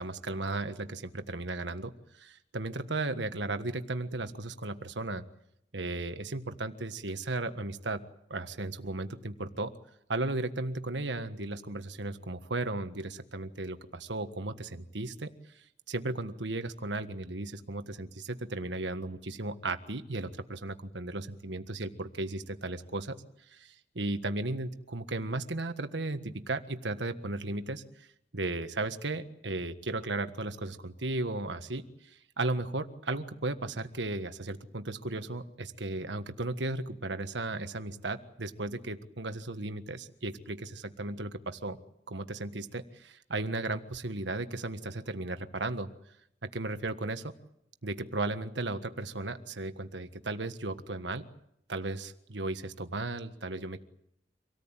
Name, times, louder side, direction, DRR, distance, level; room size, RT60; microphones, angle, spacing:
voice 1, 0.0-5.2 5.7-8.0 8.3-9.7 10.1-15.3 15.5-23.2 23.5-28.1 28.3-41.8 42.1-45.9 46.4-47.3 47.8-51.2 51.7-53.8, right 2 dB, 75° right, 9 dB, 1.6 m, -35 dB
26.5 x 18.0 x 9.0 m, 0.76 s
head